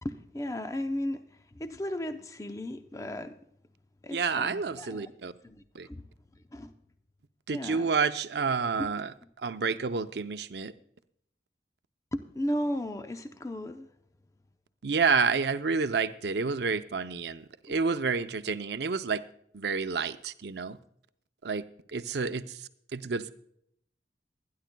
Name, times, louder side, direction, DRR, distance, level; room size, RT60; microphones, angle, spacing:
voice 1, 0.0-1.2 1.5-3.4 4.0-5.1 5.4-6.1 6.3-6.7 7.5-7.9 8.8-8.9 12.1-13.9 17.7-17.8, left 1 dB, 20° left, 0.6 m, -35 dB
voice 2, 4.1-5.3 5.7-5.9 7.5-10.7 14.8-19.2 19.5-20.8 21.4-21.6 21.9-23.3, right 5 dB, 75° right, 0.6 m, -29 dB
24.5 x 10.5 x 2.2 m
head